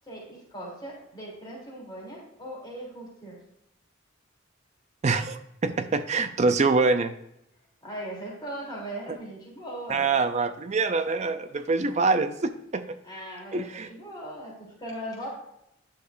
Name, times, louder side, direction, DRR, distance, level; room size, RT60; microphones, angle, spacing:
voice 1, 0.1-3.4 7.8-10.0 13.0-15.3, right 1 dB, 20° left, -4 dB, 3.0 m, -39 dB
voice 2, 5.0-7.1 9.9-13.0 13.5-13.9, right 3 dB, 35° right, 10 dB, 0.4 m, -25 dB
10.5 x 6.7 x 2.5 m, 0.79 s
head